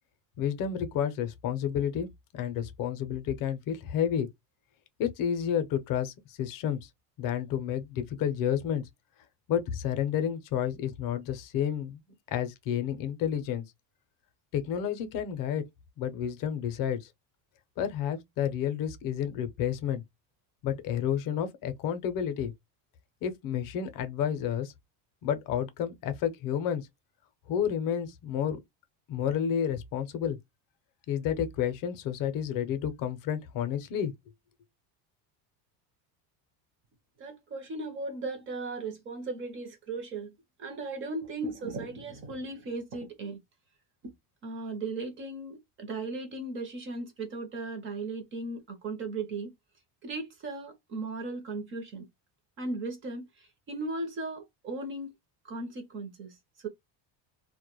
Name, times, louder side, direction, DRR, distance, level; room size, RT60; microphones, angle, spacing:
voice 1, 0.4-2.1 2.3-4.3 5.0-6.8 7.2-8.8 9.5-12.0 12.3-13.6 14.5-15.6 16.0-17.0 17.8-20.0 20.6-22.5 23.2-24.7 25.2-26.9 27.5-28.6 29.1-30.4 31.1-34.1, left 9 dB, 45° left, 0.6 m, -30 dB
voice 2, 37.2-40.3 40.6-43.4 44.0-44.1 44.4-49.5 50.0-52.1 52.6-53.3 53.7-55.1 55.5-56.3 56.6-56.7, right 3 dB, 30° right, 0.6 m, -37 dB
2.2 x 2.1 x 2.9 m
cardioid pair, 165°, 45 cm